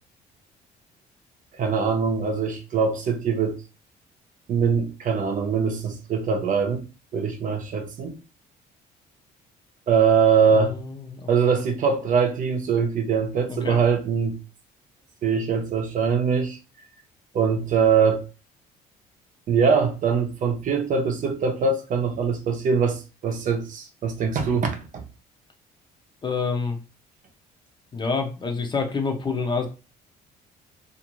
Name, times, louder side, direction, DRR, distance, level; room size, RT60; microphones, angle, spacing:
voice 1, 1.6-3.6 4.5-6.8 7.1-8.2 9.9-10.7 11.3-14.4 15.2-16.6 17.3-18.2 19.5-25.0, right 6 dB, 50° right, 0.7 m, -22 dB
voice 2, 10.5-11.6 13.5-13.8 26.2-26.8 27.9-29.7, left 4 dB, 25° left, 0.7 m, -28 dB
2.6 x 2.5 x 3.0 m
cardioid pair, 110°, 17 cm